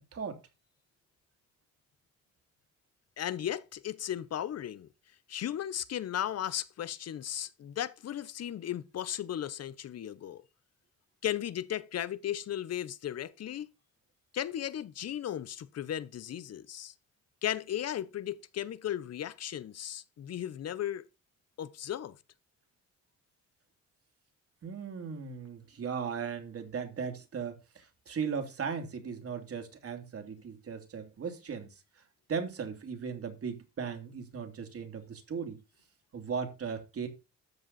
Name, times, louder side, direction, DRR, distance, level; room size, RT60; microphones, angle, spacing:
voice 1, 3.2-4.9 5.3-10.4 11.2-13.7 14.3-16.9 17.4-21.0 21.6-22.2, left 11 dB, 55° left, 1.0 m, -36 dB
voice 2, 24.6-32.0 32.3-35.6 36.1-37.1, right 6 dB, 50° right, 3.1 m, -37 dB
13.0 x 7.6 x 4.2 m
cardioid pair, 90°, 30 cm